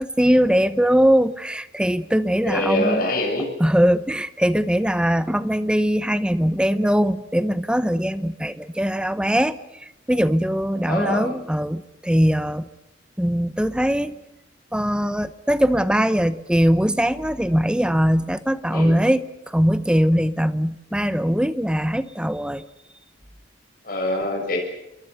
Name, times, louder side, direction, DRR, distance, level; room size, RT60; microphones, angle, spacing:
voice 1, 0.0-3.1 3.6-12.7 13.2-14.2 14.7-22.6, equal, 5° right, 14 dB, 0.9 m, -21 dB
voice 2, 2.5-3.5 10.9-11.3 18.7-18.9 23.8-24.6, left 1 dB, 50° left, 1 dB, 6.8 m, -24 dB
27.5 x 23.0 x 6.8 m, 0.90 s
head